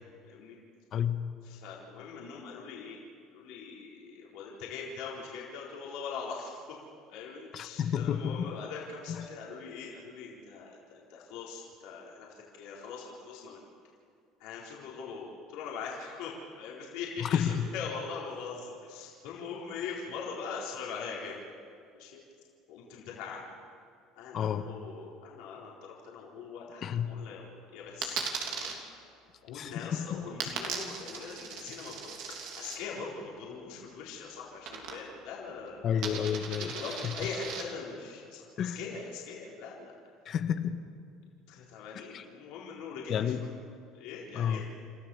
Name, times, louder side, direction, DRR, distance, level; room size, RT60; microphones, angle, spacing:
voice 1, 0.2-0.6 1.4-3.0 3.3-6.6 7.1-12.3 12.5-13.6 14.4-21.4 21.9-22.2 22.7-23.5 24.2-27.4 27.7-28.2 28.5-28.8 29.4-36.0 36.6-39.9 41.5-43.5 43.9-44.6, left 5 dB, 75° left, -4 dB, 4.0 m, -42 dB
voice 2, 7.5-8.5 17.2-17.7 24.3-24.7 26.8-27.1 29.5-30.2 35.8-36.7 37.0-37.1 38.6-38.8 40.3-40.8 42.1-42.2 43.1-43.4 44.3-44.6, left 8 dB, 50° left, 9 dB, 1.3 m, -30 dB
Coin (dropping), 28.0-28.7 30.4-32.8 34.6-35.3 35.6-37.6, right 6 dB, 70° right, 3.1 m, -38 dB
29.5 x 13.5 x 7.1 m, 2.4 s
supercardioid pair, 95°, 0 cm